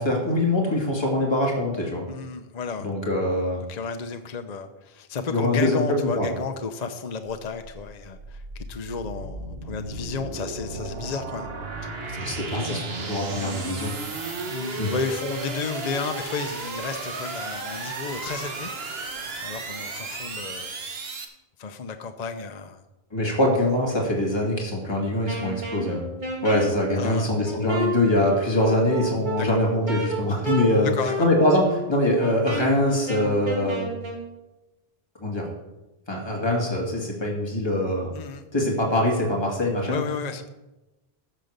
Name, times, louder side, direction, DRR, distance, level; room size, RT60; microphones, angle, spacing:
voice 1, 0.0-2.0 2.8-3.6 5.3-6.3 12.2-13.9 14.8-14.9 23.1-26.1 26.4-30.9 31.2-31.6 31.9-33.9 35.2-35.5 36.1-38.1 38.5-40.0, left 1 dB, 25° left, -2 dB, 2.4 m, -23 dB
voice 2, 2.1-2.9 3.6-11.5 11.8-12.8 14.5-18.7 19.1-20.7 21.6-22.8 27.0-27.3 29.4-29.6 30.8-31.3 38.1-38.4 39.8-40.5, left 5 dB, 45° left, 7 dB, 0.8 m, -33 dB
sound 1, 7.4-21.3, right 3 dB, 75° right, 1.5 m, -34 dB
Wind instrument woodwind instrument, 25.2-34.3, right 1 dB, 50° right, 2.4 m, -32 dB
15.0 x 5.3 x 6.6 m, 1.0 s
omnidirectional pair, 1.0 m